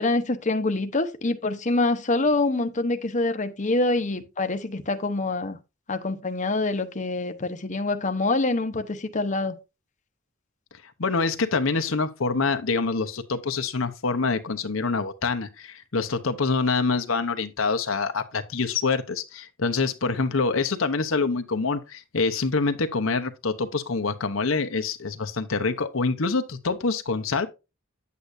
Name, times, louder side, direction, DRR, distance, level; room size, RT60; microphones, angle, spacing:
voice 1, 0.0-5.6 5.9-9.5, left 2 dB, 40° left, 0.9 m, -25 dB
voice 2, 11.0-27.5, left 4 dB, 80° left, 0.9 m, -26 dB
9.4 x 8.4 x 2.6 m
head